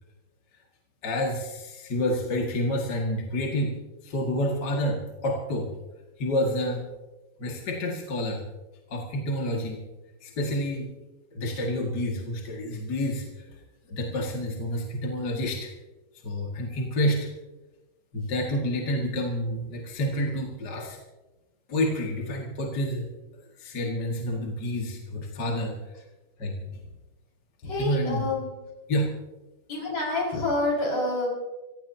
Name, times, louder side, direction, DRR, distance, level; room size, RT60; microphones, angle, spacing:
voice 1, 1.0-3.7 4.0-5.7 6.2-6.9 7.4-8.4 8.9-9.8 10.2-10.9 11.3-13.5 13.9-15.7 16.2-17.3 18.1-21.0 21.7-23.1 23.6-25.7 26.4-26.6 27.8-28.3 28.9-29.1 31.0-31.1, left 1 dB, 35° left, -1 dB, 2.2 m, -28 dB
voice 2, 27.6-28.5 29.7-31.3, left 2 dB, 50° left, -3 dB, 6.6 m, -27 dB
25.0 x 16.5 x 2.8 m, 1.1 s
omnidirectional pair, 3.6 m